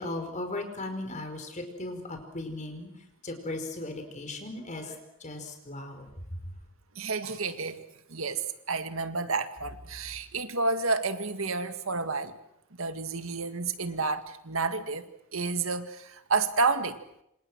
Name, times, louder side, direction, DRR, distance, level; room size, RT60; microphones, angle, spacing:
voice 1, 0.0-2.9 3.2-6.1, left 2 dB, 35° left, 6 dB, 5.0 m, -37 dB
voice 2, 7.0-7.8 8.1-12.3 12.8-17.0, right 4 dB, 75° right, 9 dB, 1.9 m, -30 dB
28.0 x 26.5 x 6.2 m, 0.78 s
head